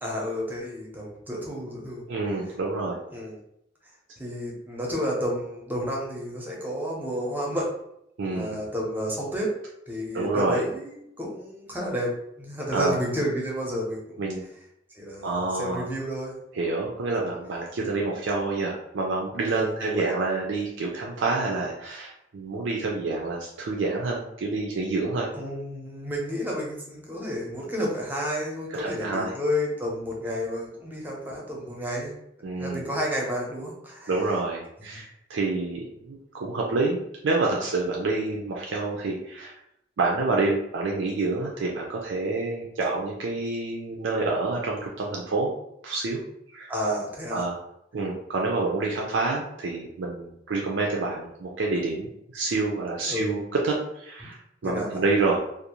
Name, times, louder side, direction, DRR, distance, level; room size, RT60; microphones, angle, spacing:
voice 1, 0.0-2.0 3.1-3.4 4.2-7.7 8.2-9.5 9.9-14.2 14.9-16.4 19.5-20.0 25.3-32.1 32.6-34.1 34.9-35.0 46.7-47.4 53.1-53.3 54.6-55.0, equal, 10° right, -3 dB, 0.6 m, -31 dB
voice 2, 2.1-3.0 8.2-8.6 10.1-10.6 12.7-13.0 14.2-14.5 15.2-15.9 16.5-25.3 28.8-29.3 32.4-32.9 34.1-39.5 40.0-45.5 45.8-46.2 46.5-46.7 47.3-47.6 47.9-52.1 52.3-55.4, right 3 dB, 90° right, -2 dB, 0.4 m, -28 dB
2.5 x 2.0 x 2.9 m, 0.77 s
head